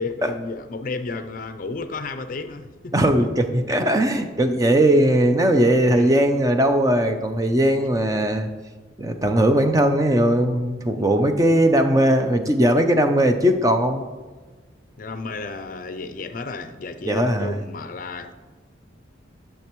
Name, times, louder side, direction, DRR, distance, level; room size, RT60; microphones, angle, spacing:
voice 1, 0.0-3.1 5.8-6.1 11.0-11.1 15.0-18.3, left 3 dB, 45° left, 0.5 m, -32 dB
voice 2, 2.9-8.5 9.0-14.0 17.1-17.6, right 1 dB, 15° right, 0.5 m, -19 dB
12.0 x 6.6 x 3.0 m
head